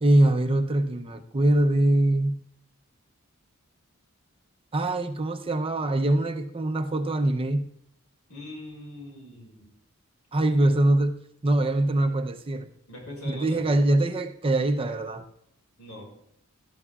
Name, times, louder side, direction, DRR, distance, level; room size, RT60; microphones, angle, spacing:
voice 1, 0.0-2.4 4.7-7.7 10.3-11.2 11.4-12.7 13.2-15.2, right 1 dB, 25° right, 7 dB, 0.6 m, -23 dB
voice 2, 8.3-9.6 12.9-13.7 15.8-16.1, left 1 dB, 85° left, -1 dB, 5.8 m, -41 dB
18.0 x 12.5 x 2.4 m, 0.72 s
head